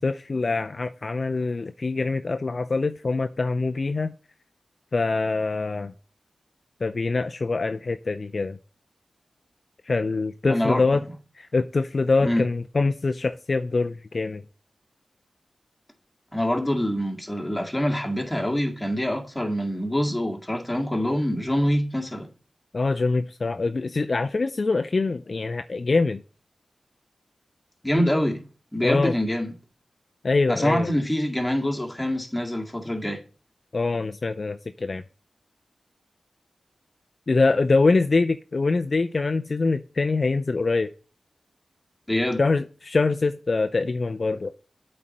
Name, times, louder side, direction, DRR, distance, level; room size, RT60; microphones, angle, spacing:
voice 1, 0.0-4.1 4.9-5.9 6.8-8.6 9.9-11.0 11.4-14.4 22.7-26.2 28.8-29.2 30.2-30.9 33.7-35.0 37.3-40.9 42.4-44.5, left 3 dB, 55° left, 0.4 m, -24 dB
voice 2, 10.5-11.0 12.2-12.4 16.3-22.3 27.8-28.4 28.7-29.5 30.5-33.2 42.1-42.4, equal, 15° left, 2.0 m, -25 dB
8.3 x 4.3 x 6.5 m
cardioid pair, 50°, 0 cm